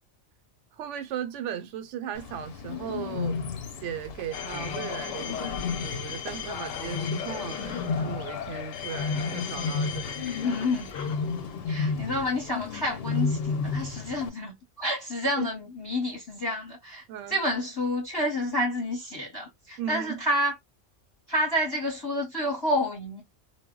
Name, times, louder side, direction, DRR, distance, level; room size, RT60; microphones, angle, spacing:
voice 1, 0.8-3.4 3.8-10.5 15.4-15.5 17.1-17.4 19.8-20.2, right 9 dB, 75° right, 0.9 m, -36 dB
Bird, 2.1-14.3, left 5 dB, 60° left, 0.7 m, -33 dB
sound 1, 4.3-11.6, left 8 dB, 85° left, 0.9 m, -37 dB
voice 2, 10.3-10.9 11.7-20.5 21.3-23.2, left 1 dB, 20° left, 0.8 m, -29 dB
2.2 x 2.1 x 3.6 m
omnidirectional pair, 1.3 m